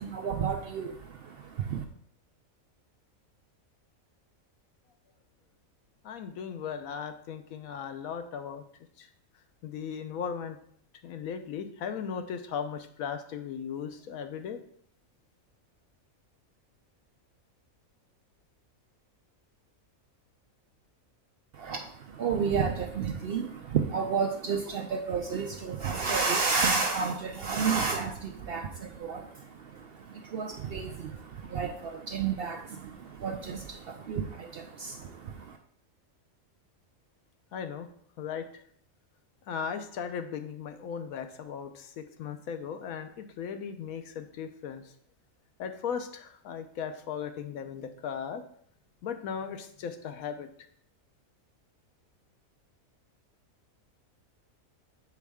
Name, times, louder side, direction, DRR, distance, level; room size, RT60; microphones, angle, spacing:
voice 1, 0.0-1.8 21.5-35.6, right 5 dB, 65° right, 4 dB, 0.6 m, -31 dB
voice 2, 6.0-8.6 9.0-9.1 9.6-10.6 11.0-14.6 37.5-37.9 38.2-38.5 39.5-44.8 45.6-48.4 49.0-50.5, left 7 dB, 90° left, 8 dB, 1.1 m, -37 dB
7.2 x 4.6 x 3.5 m, 0.65 s
omnidirectional pair, 1.4 m